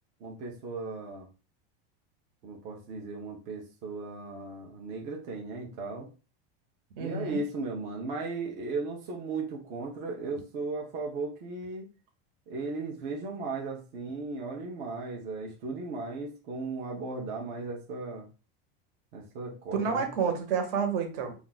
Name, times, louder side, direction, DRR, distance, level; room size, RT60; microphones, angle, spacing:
voice 1, 0.2-1.3 2.4-6.1 7.0-11.9 12.5-18.3 19.1-20.1, right 3 dB, 25° right, 0 dB, 0.4 m, -36 dB
voice 2, 7.0-7.4 19.7-21.3, right 6 dB, 65° right, 5 dB, 0.9 m, -29 dB
2.3 x 2.2 x 3.9 m, 0.33 s
supercardioid pair, 170°, 31 cm